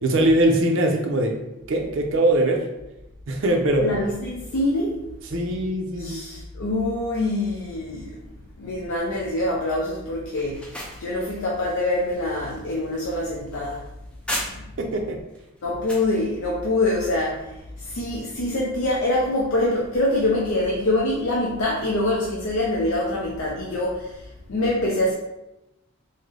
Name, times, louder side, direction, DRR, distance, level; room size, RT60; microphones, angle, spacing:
voice 1, 0.0-1.3 1.7-2.6 3.3-3.9 5.3-6.3 14.8-15.2, right 1 dB, 60° right, 3 dB, 0.5 m, -21 dB
voice 2, 3.8-5.0 6.0-8.1 8.6-10.6 11.0-13.8 15.6-17.4 17.9-24.1 24.5-25.1, left 1 dB, 70° left, -4 dB, 0.5 m, -24 dB
sound 1, 10.4-14.9 15.3-16.1, equal, 5° left, 0.4 m, -36 dB
3.7 x 2.1 x 3.2 m, 0.92 s
head